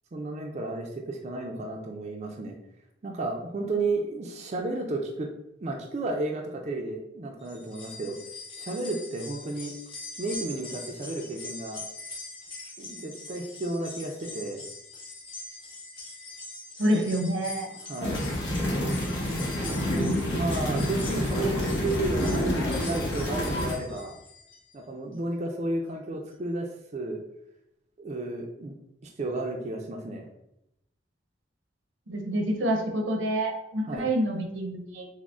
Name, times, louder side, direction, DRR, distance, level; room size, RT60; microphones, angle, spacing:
voice 1, 0.1-2.6 3.0-5.3 5.6-8.2 8.5-9.7 10.2-11.8 12.8-14.6 16.9-17.2 17.8-18.2 19.8-22.5 22.8-24.1 24.7-27.2 28.0-28.7 29.0-30.3 33.9-34.1, right 2 dB, 35° right, 1 dB, 0.4 m, -32 dB
sound 1, 7.4-24.7 25.1-25.2 26.3-26.4, left 3 dB, 25° left, 0.7 m, -43 dB
voice 2, 16.8-17.7 32.1-35.1, right 1 dB, 85° right, 3 dB, 0.7 m, -27 dB
sound 2, 18.0-23.7, left 1 dB, 75° left, 0.9 m, -28 dB
6.0 x 2.0 x 2.4 m, 0.82 s
head